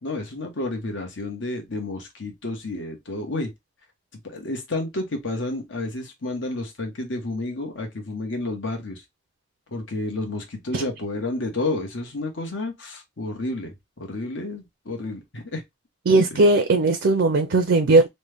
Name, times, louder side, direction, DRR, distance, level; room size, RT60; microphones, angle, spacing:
voice 1, 0.0-3.5 4.2-9.0 9.7-13.7 14.0-15.6 16.3-16.5, left 2 dB, 80° left, 1.1 m, -30 dB
voice 2, 16.1-18.1, right 2 dB, 75° right, 0.5 m, -18 dB
3.2 x 2.2 x 3.3 m
head